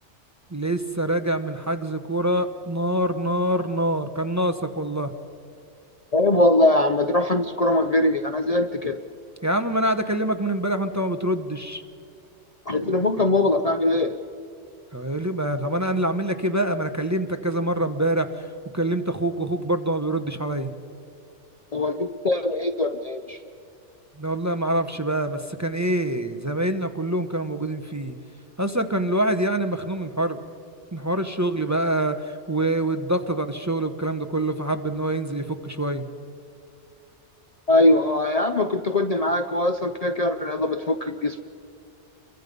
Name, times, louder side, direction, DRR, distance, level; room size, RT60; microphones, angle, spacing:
voice 1, 0.5-5.1 9.4-11.8 14.9-18.3 18.7-20.7 24.2-28.1 28.6-30.4 30.9-32.2 32.5-36.0, right 1 dB, 15° right, 7 dB, 1.0 m, -25 dB
voice 2, 6.1-9.0 12.7-14.2 21.7-23.4 37.7-41.4, left 2 dB, 40° left, 7 dB, 0.7 m, -21 dB
28.5 x 23.5 x 5.4 m, 2.6 s
omnidirectional pair, 1.2 m